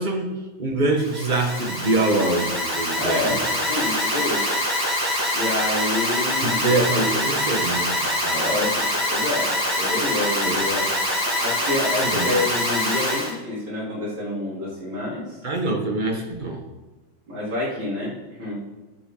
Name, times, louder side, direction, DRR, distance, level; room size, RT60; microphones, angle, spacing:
voice 1, 0.0-3.4 6.4-8.4 10.4-10.9 12.0-12.3 15.4-16.6, right 2 dB, 25° right, 2 dB, 1.3 m, -25 dB
Alarm, 1.0-13.3, left 1 dB, 10° right, 1.9 m, -24 dB
voice 2, 2.9-4.4 5.3-6.8 8.3-10.9 11.4-15.4 17.3-18.6, left 2 dB, 75° right, -8 dB, 4.2 m, -28 dB
16.5 x 7.0 x 3.9 m, 1.1 s
omnidirectional pair, 2.1 m